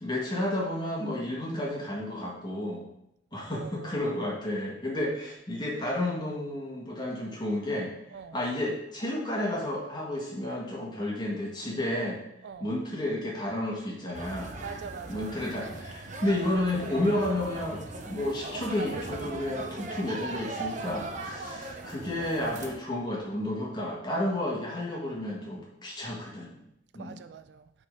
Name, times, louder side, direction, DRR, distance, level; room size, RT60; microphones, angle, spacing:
voice 1, 0.0-2.8 3.3-7.9 8.3-12.2 12.6-14.5 15.1-17.8 18.1-26.6 26.9-27.2, left 1 dB, 25° left, -4 dB, 1.8 m, -31 dB
voice 2, 3.5-4.4 8.1-8.4 12.4-12.7 14.6-15.3 16.1-16.2 27.0-27.7, right 6 dB, 60° right, 12 dB, 0.3 m, -44 dB
sound 1, 14.1-22.7, right 2 dB, 40° right, 0.7 m, -38 dB
8.9 x 4.0 x 3.9 m, 0.80 s
head